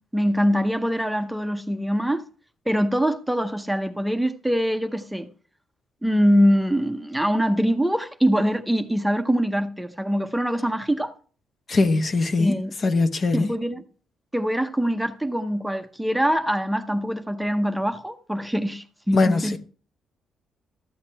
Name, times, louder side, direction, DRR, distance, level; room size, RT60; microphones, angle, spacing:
voice 1, 0.0-2.2 2.7-5.3 6.0-11.1 12.4-12.7 13.3-13.8 14.3-19.6, equal, 5° right, 0.7 m, -23 dB
voice 2, 11.7-13.5 19.1-19.6, left 3 dB, 45° left, 1.1 m, -21 dB
13.0 x 8.1 x 3.3 m
cardioid pair, 90°, 0 cm